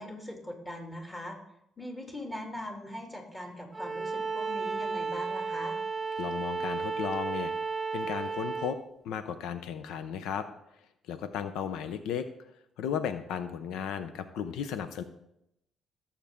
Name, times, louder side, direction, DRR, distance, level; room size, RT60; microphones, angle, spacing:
voice 1, 0.0-1.4 1.8-5.8, left 1 dB, 15° left, 1 dB, 2.8 m, -40 dB
Bowed string instrument, 3.7-8.8, right 4 dB, 25° right, 1.2 m, -33 dB
voice 2, 6.2-7.5 7.9-8.8 9.0-10.5 11.1-12.3 12.8-15.0, left 8 dB, 90° left, 10 dB, 0.6 m, -34 dB
16.0 x 7.3 x 3.6 m, 0.80 s
cardioid pair, 90°, 0 cm